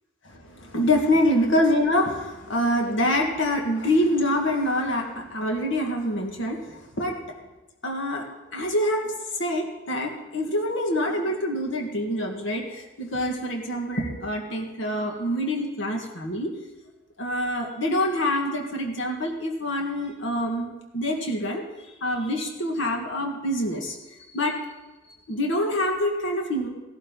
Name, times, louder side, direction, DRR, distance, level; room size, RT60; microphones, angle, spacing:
voice 1, 0.2-7.2 7.8-8.3 8.5-9.1 9.4-16.5 17.2-21.6 22.0-24.0 24.3-24.6 25.3-26.7, left 1 dB, 75° left, 2 dB, 1.8 m, -26 dB
16.5 x 12.0 x 3.9 m, 1.1 s
head